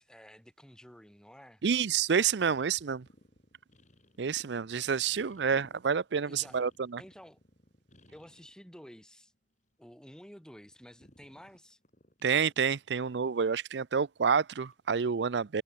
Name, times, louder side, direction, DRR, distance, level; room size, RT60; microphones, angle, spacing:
voice 1, 0.0-1.6 4.9-5.0 6.2-6.6 7.0-7.4 8.1-9.3 9.8-11.8, equal, 5° left, 3.1 m, -52 dB
voice 2, 1.6-3.1 4.2-7.0 12.2-15.6, right 6 dB, 80° right, 0.5 m, -28 dB
sound 1, 2.3-8.6 9.0-10.0 10.3-13.8 14.6-14.9, left 1 dB, 45° left, 6.8 m, -63 dB
head